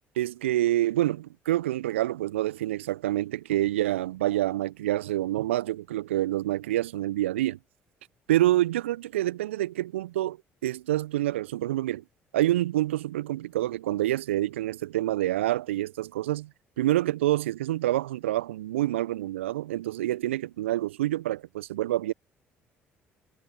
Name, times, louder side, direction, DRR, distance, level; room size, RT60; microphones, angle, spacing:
voice 1, 0.2-7.6 8.3-12.0 12.3-16.5 16.8-22.1, right 14 dB, 75° right, 1.1 m, -27 dB
figure-of-eight pair, 50°, 7 cm